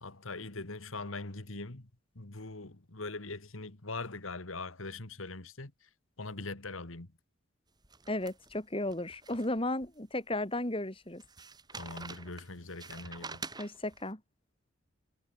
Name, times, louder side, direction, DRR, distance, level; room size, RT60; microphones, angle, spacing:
voice 1, 0.0-1.9 2.2-5.9 6.2-7.1 11.7-13.5, left 3 dB, 85° left, 2.1 m, -42 dB
sound 1, 7.8-9.9 10.3-10.4 11.2-14.0, right 4 dB, 20° right, 4.2 m, -47 dB
voice 2, 8.1-11.2 13.6-14.2, left 1 dB, 25° left, 2.5 m, -34 dB
head